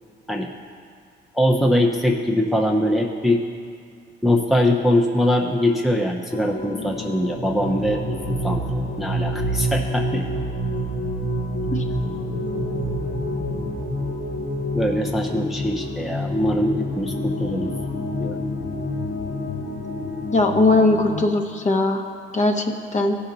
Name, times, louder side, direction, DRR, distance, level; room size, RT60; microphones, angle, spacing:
voice 1, 1.3-3.4 4.2-8.6 9.0-10.2 14.7-17.7 18.2-18.4, left 1 dB, ahead, 1 dB, 0.7 m, -22 dB
sound 1, 6.3-21.2, equal, 85° left, 1.5 m, -27 dB
voice 2, 20.3-22.0 22.3-23.2, left 2 dB, 35° left, 4 dB, 1.0 m, -19 dB
16.0 x 5.6 x 3.9 m, 2.3 s
cardioid pair, 90°, 20 cm